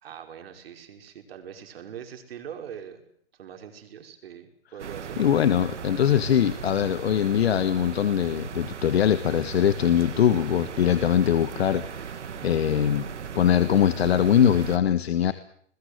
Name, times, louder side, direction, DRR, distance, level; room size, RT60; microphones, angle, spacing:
voice 1, 0.0-3.0 3.4-5.2, right 8 dB, 55° right, 5 dB, 5.4 m, -42 dB
sound 1, 4.8-14.8, right 7 dB, 75° right, 2.5 m, -37 dB
voice 2, 5.2-12.2 12.4-13.1 13.3-15.3, left 9 dB, 60° left, 12 dB, 1.7 m, -22 dB
30.0 x 21.0 x 8.2 m, 0.67 s
hypercardioid pair, 150°, 36 cm